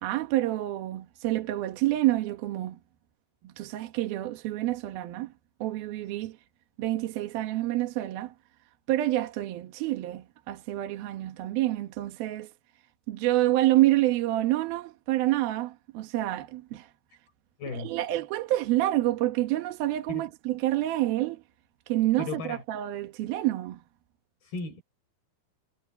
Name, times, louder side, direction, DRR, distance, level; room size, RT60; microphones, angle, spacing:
voice 1, 0.0-2.8 3.6-5.3 5.6-6.4 6.8-8.3 8.9-12.5 13.1-16.9 17.7-21.4 21.9-23.8, right 15 dB, 75° right, 3.2 m, -28 dB
voice 2, 17.6-18.0 20.1-20.3 22.2-22.6 24.4-24.8, left 4 dB, 75° left, 6.8 m, -35 dB
omnidirectional pair, 4.4 m